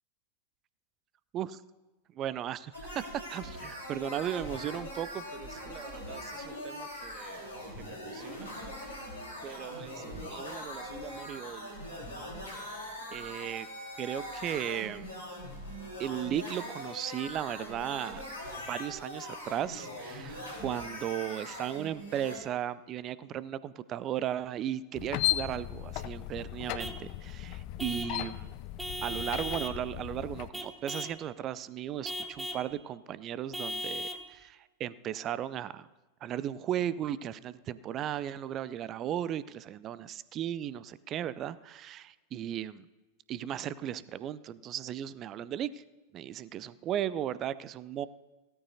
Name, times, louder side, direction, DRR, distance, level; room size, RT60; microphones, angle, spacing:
voice 1, 2.1-7.5 7.8-8.6 9.4-12.3 13.1-13.7 14.0-15.2 16.0-18.2 18.6-28.5 29.0-35.9 36.2-42.9 43.3-45.8 46.1-48.1, right 10 dB, 30° right, 17 dB, 0.4 m, -36 dB
sound 1, 2.7-22.4, left 1 dB, 75° left, 4.1 m, -42 dB
sound 2, 24.9-30.5, left 15 dB, 45° left, 0.4 m, -36 dB
Vehicle horn car horn honking / Truck, 26.8-27.1 27.8-28.2 28.8-29.8 30.5-31.2 32.0-32.7 33.5-34.3, left 1 dB, 5° right, 0.9 m, -37 dB
16.5 x 13.5 x 2.7 m, 1.2 s
figure-of-eight pair, 90°, 0 cm